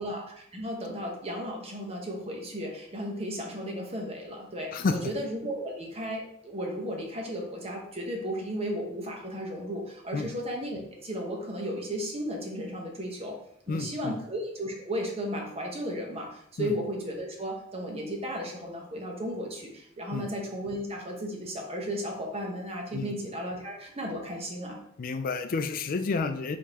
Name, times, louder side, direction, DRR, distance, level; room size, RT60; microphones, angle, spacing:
voice 1, 0.0-13.3 13.7-16.3 16.6-19.7 20.0-24.8, equal, 30° right, 0 dB, 0.9 m, -34 dB
voice 2, 13.7-14.2 16.6-16.7 20.1-20.3 22.9-23.2 25.0-26.6, left 4 dB, 45° left, 8 dB, 0.4 m, -30 dB
4.9 x 3.5 x 2.9 m, 0.72 s
head